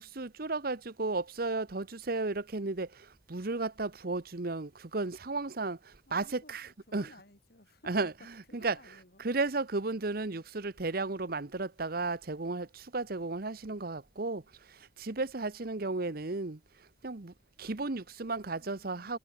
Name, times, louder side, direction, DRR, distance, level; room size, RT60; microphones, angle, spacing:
voice 1, 0.0-7.1 7.9-8.1 8.5-8.8 9.2-14.4 15.0-16.6 17.0-19.2, right 3 dB, 50° right, 1.0 m, -34 dB
voice 2, 6.1-8.1 8.5-9.4 18.5-19.2, left 1 dB, 55° left, 4.5 m, -57 dB
head